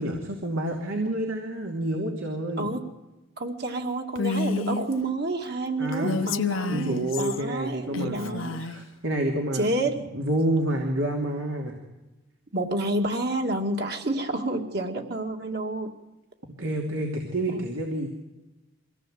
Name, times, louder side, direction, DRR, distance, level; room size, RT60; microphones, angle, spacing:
voice 1, 0.0-2.7 5.8-6.2 6.7-9.7 10.0-11.7 16.6-18.1, right 1 dB, 75° right, 1 dB, 2.8 m, -28 dB
voice 2, 3.4-8.7 9.5-10.0 12.5-15.9 17.5-17.6, right 1 dB, 50° right, 3 dB, 2.5 m, -29 dB
Female speech woman speaking, 4.2-4.9 5.9-7.4 7.9-8.8, left 3 dB, 75° left, 1.0 m, -29 dB
24.5 x 17.0 x 7.9 m, 1.1 s
head